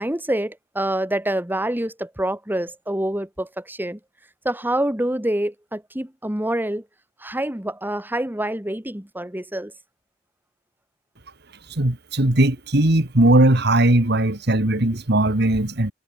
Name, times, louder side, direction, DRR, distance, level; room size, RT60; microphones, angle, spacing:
voice 1, 0.0-4.0 4.4-6.8 7.2-9.7, right 1 dB, 10° right, 1.9 m, -26 dB
voice 2, 11.8-15.9, right 1 dB, 60° right, 2.3 m, -18 dB
head